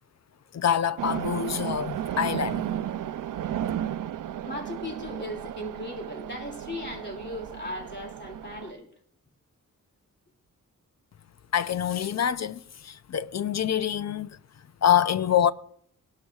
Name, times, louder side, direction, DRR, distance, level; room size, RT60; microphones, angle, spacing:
voice 1, 0.5-2.7 11.5-14.3 14.8-15.5, left 9 dB, 55° left, 0.5 m, -25 dB
sound 1, 1.0-8.7, right 11 dB, 70° right, 0.5 m, -34 dB
voice 2, 4.4-8.9, left 1 dB, 35° left, 2.6 m, -37 dB
19.0 x 12.0 x 2.4 m
cardioid pair, 80°, 33 cm